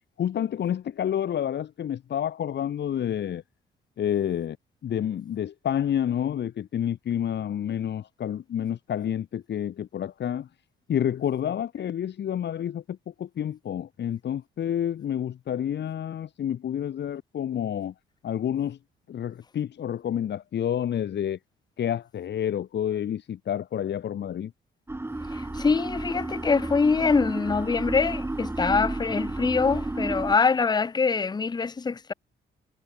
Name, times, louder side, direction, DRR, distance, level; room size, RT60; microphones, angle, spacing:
voice 1, 0.2-3.4 4.0-4.6 4.8-10.5 10.9-17.9 18.2-18.8 19.1-21.4 21.8-24.5, left 10 dB, 60° left, 2.4 m, -29 dB
sound 1, 24.9-30.4, right 2 dB, 10° right, 1.9 m, -32 dB
voice 2, 25.3-32.1, left 5 dB, 20° left, 0.7 m, -24 dB
cardioid pair, 90°, 20 cm